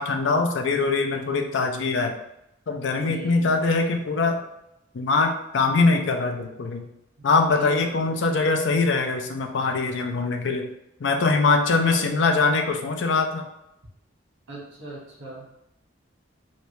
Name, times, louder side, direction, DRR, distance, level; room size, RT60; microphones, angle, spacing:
voice 1, 0.0-2.2 2.7-4.4 4.9-6.9 7.2-10.7 11.0-13.5, left 3 dB, 65° left, 4 dB, 0.4 m, -22 dB
voice 2, 3.0-3.7 7.5-8.5 11.6-12.2 14.5-15.5, right 2 dB, 85° right, -3 dB, 1.3 m, -39 dB
3.2 x 2.7 x 3.0 m, 0.82 s
head